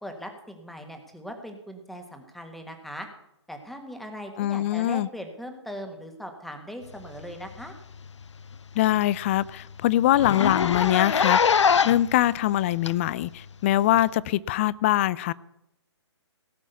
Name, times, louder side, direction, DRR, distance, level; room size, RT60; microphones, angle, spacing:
voice 1, 0.0-3.1 3.5-7.7, equal, ahead, 1.6 m, -39 dB
voice 2, 4.4-5.1 8.7-15.3, left 14 dB, 25° left, 0.4 m, -23 dB
Zipper (clothing), 7.5-7.7 8.1-8.2 8.5-8.6 9.0-9.1 9.3-9.5 10.1-12.1 12.9-13.0 14.0-14.1, left 6 dB, 85° left, 0.5 m, -23 dB
17.5 x 6.2 x 7.9 m
hypercardioid pair, 145°, 15 cm